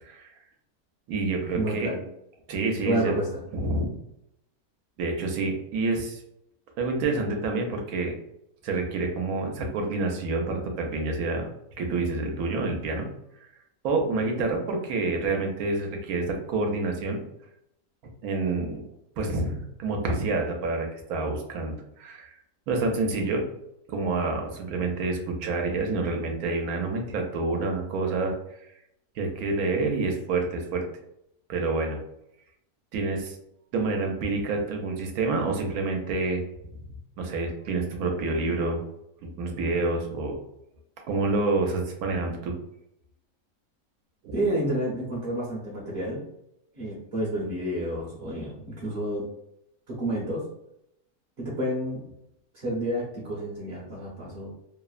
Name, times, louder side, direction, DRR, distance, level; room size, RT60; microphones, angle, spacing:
voice 1, 0.0-0.3 1.1-1.9 2.5-3.1 3.5-3.9 5.0-6.2 6.8-8.2 8.6-11.5 11.8-13.1 13.8-17.2 18.2-18.8 19.2-22.4 22.7-23.4 23.9-28.3 29.2-30.8 31.5-32.0 32.9-33.4 33.7-36.4 37.2-38.8 39.2-40.4 41.1-42.5 44.2-44.4, right 3 dB, 85° right, 2 dB, 1.1 m, -28 dB
voice 2, 1.4-2.0 2.8-3.3 44.3-46.2 46.8-49.3 49.9-50.4 51.4-52.0 52.5-54.5, right 1 dB, 50° right, -6 dB, 0.7 m, -29 dB
3.0 x 2.0 x 2.3 m, 0.79 s
omnidirectional pair, 1.5 m